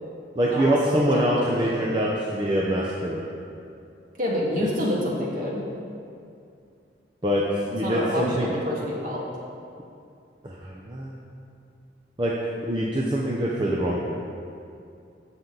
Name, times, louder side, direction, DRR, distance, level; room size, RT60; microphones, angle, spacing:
voice 1, 0.4-3.2 4.6-4.7 7.2-8.5 10.4-11.2 12.2-12.4 12.7-14.1, right 1 dB, 25° right, -4 dB, 0.8 m, -24 dB
voice 2, 0.9-1.8 4.2-5.6 7.8-9.2, left 1 dB, 45° right, -4 dB, 2.0 m, -28 dB
15.0 x 6.2 x 4.0 m, 2.5 s
head